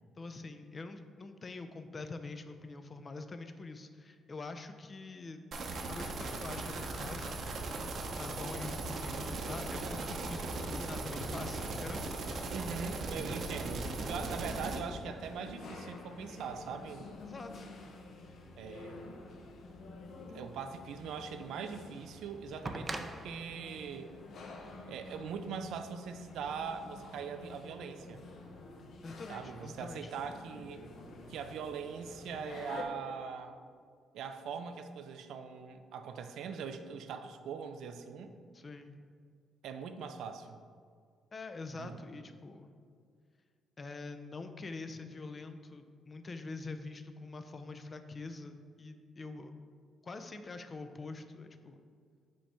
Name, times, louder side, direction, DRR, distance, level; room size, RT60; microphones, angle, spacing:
voice 1, 0.2-5.4 5.9-7.4 8.1-12.0 17.2-17.7 29.0-30.1 38.5-39.0 41.3-42.7 43.8-49.6 50.0-51.8, left 3 dB, 35° left, 8 dB, 0.5 m, -45 dB
sound 1, 5.5-14.8, right 3 dB, 60° right, 0.8 m, -38 dB
voice 2, 12.5-17.2 18.6-19.0 20.3-24.1 24.9-28.3 29.3-30.9 31.3-33.6 34.1-38.3 39.6-40.6 41.8-42.0, right 6 dB, 80° right, 8 dB, 0.4 m, -41 dB
sound 2, 13.1-32.8, left 3 dB, 70° left, 0.8 m, -50 dB
sound 3, 22.6-25.5 26.7-26.8, right 2 dB, 25° right, 0.5 m, -43 dB
5.2 x 3.4 x 5.6 m, 2.1 s
cardioid pair, 90°, 0 cm